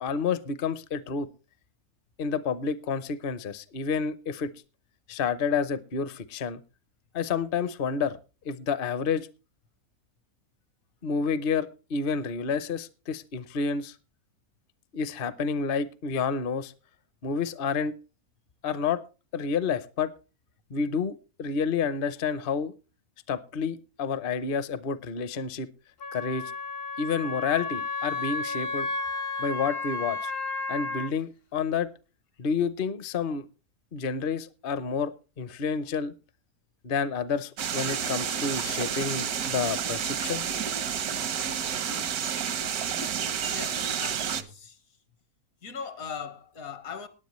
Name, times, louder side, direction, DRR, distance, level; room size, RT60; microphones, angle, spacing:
voice 1, 0.0-1.3 2.2-4.5 5.1-6.6 7.1-8.2 8.4-9.3 11.0-14.0 14.9-16.7 17.2-18.0 18.6-19.0 19.3-20.1 20.7-22.7 23.3-25.7 26.1-26.5 27.0-28.9 29.4-30.3 30.7-31.9 32.4-33.5 33.9-36.1 36.8-40.6, left 5 dB, 50° left, 0.7 m, -29 dB
Wind instrument woodwind instrument, 26.0-31.1, left 3 dB, 90° left, 1.9 m, -32 dB
sound 1, 37.6-44.4, right 8 dB, 85° right, 1.5 m, -30 dB
voice 2, 43.4-44.8 45.6-47.1, left 6 dB, 70° left, 1.8 m, -39 dB
18.5 x 10.0 x 3.1 m
omnidirectional pair, 1.6 m